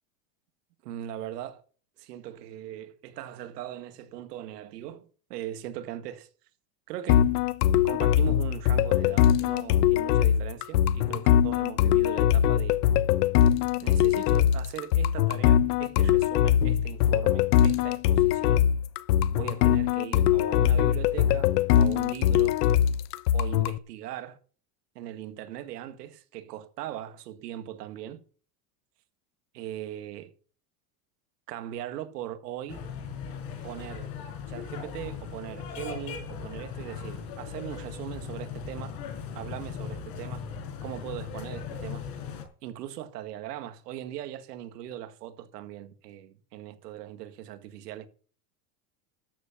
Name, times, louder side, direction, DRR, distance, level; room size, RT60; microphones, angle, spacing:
voice 1, 0.8-1.6 2.0-6.3 6.9-7.3 7.8-12.8 13.8-18.7 19.3-22.6 23.3-24.4 25.0-28.2 29.5-30.3 31.5-32.8 33.6-34.1 34.5-39.0 39.3-40.4 40.8-42.1 42.6-48.1, right 12 dB, 90° right, 2.0 m, -40 dB
sound 1, 7.1-23.8, left 10 dB, 80° left, 1.0 m, -22 dB
sound 2, 32.7-42.4, left 6 dB, 50° left, 5.1 m, -38 dB
13.0 x 7.0 x 7.2 m
supercardioid pair, 140°, 47 cm